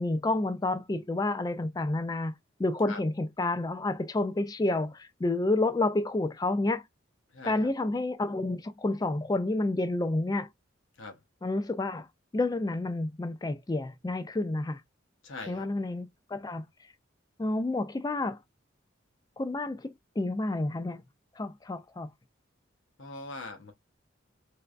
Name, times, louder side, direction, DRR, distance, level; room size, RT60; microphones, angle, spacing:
voice 1, 0.0-2.3 2.6-6.8 7.4-10.5 11.4-12.1 12.3-14.8 15.5-16.6 17.4-18.4 19.4-21.0 21.4-22.1, left 2 dB, 20° left, 0.3 m, -29 dB
voice 2, 7.3-7.7 11.0-11.2 15.2-15.7 23.0-23.7, left 3 dB, 80° left, 1.0 m, -41 dB
3.3 x 3.1 x 2.5 m
head